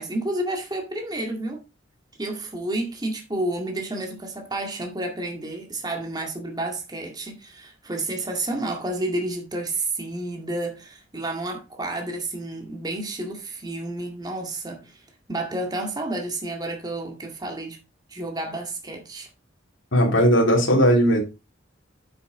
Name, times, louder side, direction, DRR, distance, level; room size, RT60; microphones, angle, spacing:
voice 1, 0.0-1.6 2.2-15.0 15.3-17.8 18.1-19.3, right 2 dB, 20° right, 2.0 m, -30 dB
voice 2, 19.9-21.2, equal, 75° left, 2.9 m, -17 dB
8.2 x 7.1 x 3.8 m
head